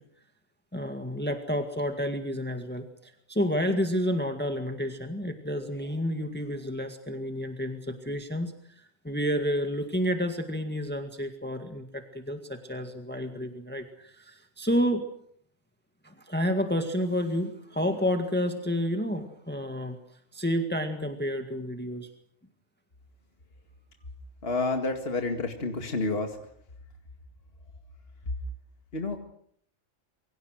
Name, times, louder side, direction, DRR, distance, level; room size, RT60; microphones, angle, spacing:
voice 1, 0.7-15.1 16.0-20.0 20.3-22.1, equal, 10° left, 5 dB, 1.9 m, -30 dB
voice 2, 24.4-26.4 28.9-29.2, left 3 dB, 50° left, 4 dB, 2.4 m, -29 dB
27.5 x 24.5 x 6.4 m, 0.67 s
omnidirectional pair, 1.3 m